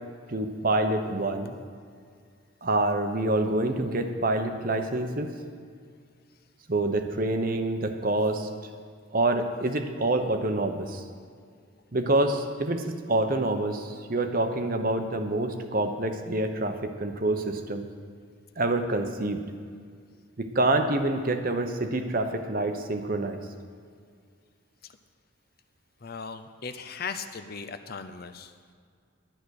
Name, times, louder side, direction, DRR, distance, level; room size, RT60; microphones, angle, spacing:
voice 1, 0.3-1.5 2.6-5.3 6.7-8.5 9.1-11.0 11.9-17.9 18.6-19.4 20.4-23.4, right 2 dB, 45° right, 6 dB, 0.9 m, -27 dB
voice 2, 26.0-28.5, left 5 dB, 45° left, 9 dB, 0.6 m, -38 dB
11.0 x 10.0 x 6.5 m, 2.1 s
head